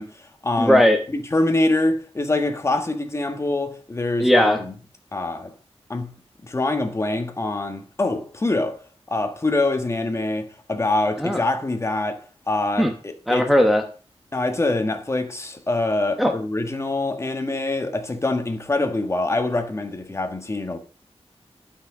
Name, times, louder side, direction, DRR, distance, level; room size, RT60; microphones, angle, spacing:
voice 1, 0.0-0.8 1.1-4.7 5.1-5.5 5.9-6.1 6.4-8.8 9.1-13.5 14.3-20.8, left 2 dB, 25° left, 1.5 m, -25 dB
voice 2, 0.6-1.0 4.2-4.6 11.2-11.4 12.8-12.9 13.3-13.8 16.2-16.3, left 1 dB, ahead, 1.0 m, -17 dB
11.5 x 6.0 x 5.0 m
wide cardioid pair, 140°, 11 cm